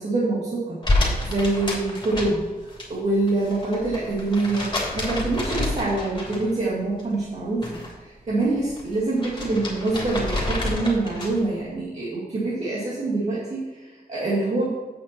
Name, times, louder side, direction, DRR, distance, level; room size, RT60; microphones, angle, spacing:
voice 1, 0.0-14.7, right 2 dB, 45° right, -6 dB, 2.2 m, -25 dB
sound 1, 0.8-2.9 3.1-6.6 7.0-7.9 8.3-11.5, left 2 dB, 30° left, 3.1 m, -28 dB
8.4 x 5.9 x 5.8 m, 1.3 s
cardioid pair, 90°, 15 cm